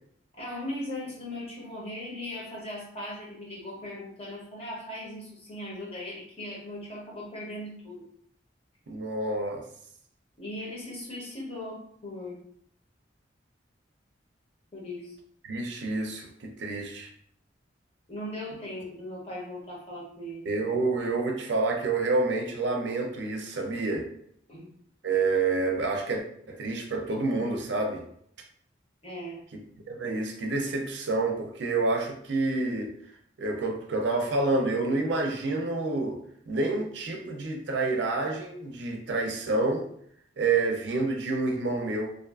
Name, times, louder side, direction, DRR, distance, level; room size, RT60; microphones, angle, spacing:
voice 1, 0.3-8.1 10.4-12.4 14.7-15.2 18.1-20.6 24.5-24.7 29.0-29.4, left 1 dB, 30° left, -4 dB, 0.7 m, -38 dB
voice 2, 8.9-9.7 15.5-17.1 20.5-24.1 25.0-26.2 26.5-28.0 29.9-32.9 33.4-36.2 36.5-39.9 40.4-42.2, right 3 dB, 65° right, 2 dB, 0.5 m, -28 dB
2.5 x 2.3 x 2.3 m, 0.66 s
head